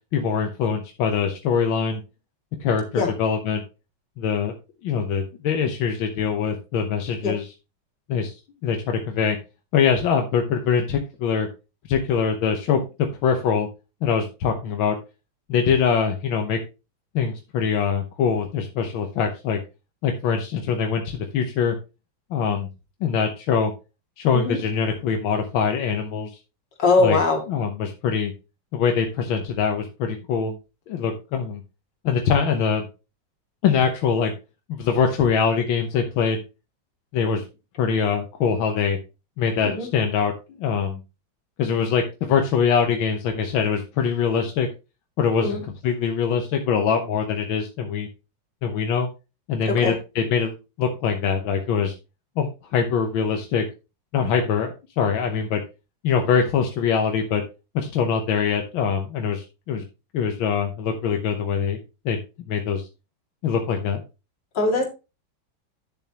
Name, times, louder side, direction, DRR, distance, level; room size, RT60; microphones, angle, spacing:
voice 1, 0.1-2.0 2.6-3.6 4.2-4.5 4.8-7.5 8.1-9.4 9.7-11.5 11.9-13.7 14.0-15.0 15.5-16.6 17.2-19.6 20.0-21.8 22.3-22.7 23.0-23.7 24.2-26.4 27.0-27.2 27.5-28.3 28.7-30.6 30.9-31.6 32.0-32.9 33.6-34.3 34.7-36.4 37.1-37.4 37.8-39.0 39.4-40.3 40.6-41.0 41.6-44.7 45.2-48.1 48.6-49.1 49.5-51.9 52.4-53.7 54.1-55.6 56.0-57.4 57.8-59.8 60.1-61.8 62.1-62.2 62.5-62.9 63.4-64.0, left 6 dB, 85° left, 4 dB, 1.8 m, -23 dB
voice 2, 26.8-27.4 39.7-39.9 45.4-45.6 49.7-49.9 64.5-64.9, left 3 dB, 65° left, 1 dB, 3.0 m, -20 dB
11.0 x 7.0 x 2.9 m, 0.28 s
omnidirectional pair, 2.1 m